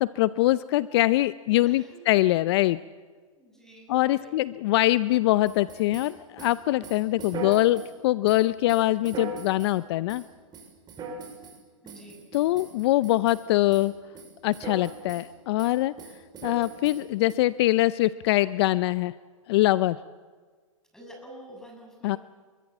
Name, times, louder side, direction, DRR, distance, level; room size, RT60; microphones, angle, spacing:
voice 1, 0.0-2.8 3.9-10.2 12.3-13.9 14.4-15.9 16.4-19.1 19.5-20.0 22.0-22.2, left 16 dB, 50° left, 16 dB, 0.6 m, -23 dB
voice 2, 1.6-2.0 3.4-4.4 11.8-12.2 20.9-22.2, right 1 dB, 5° left, 0 dB, 7.7 m, -48 dB
sound 1, 5.5-7.9 8.3-9.8 10.1-10.3 10.5-11.6 11.9-13.4 13.7-13.9 14.2-15.3 15.6-17.3, right 3 dB, 25° right, 6.8 m, -39 dB
27.0 x 23.5 x 7.4 m, 1.5 s
hypercardioid pair, 120°, 17 cm